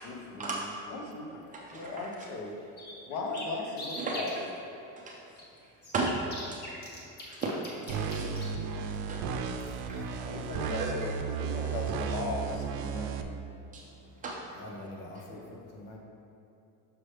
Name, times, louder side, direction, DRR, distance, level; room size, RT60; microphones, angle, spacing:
voice 1, 0.0-2.5 3.1-4.5 10.3-13.4, left 3 dB, 65° left, 1 dB, 1.0 m, -38 dB
voice 2, 1.5-2.1 4.0-4.2 5.9-6.3 7.4-7.5 7.9-8.3 8.7-9.2 9.5-9.6 9.9-10.7 13.7-13.8 14.2-14.4, right 3 dB, 20° right, -2 dB, 0.3 m, -35 dB
sound 1, 2.4-2.5 2.8-4.3 5.4-8.5, left 1 dB, 25° left, 0.9 m, -42 dB
sound 2, 7.9-13.2, right 6 dB, 75° right, 0.6 m, -34 dB
voice 3, 9.6-10.6 14.5-16.0, left 1 dB, 85° left, -1 dB, 1.3 m, -46 dB
6.3 x 6.1 x 3.3 m, 2.9 s
cardioid pair, 180°, 39 cm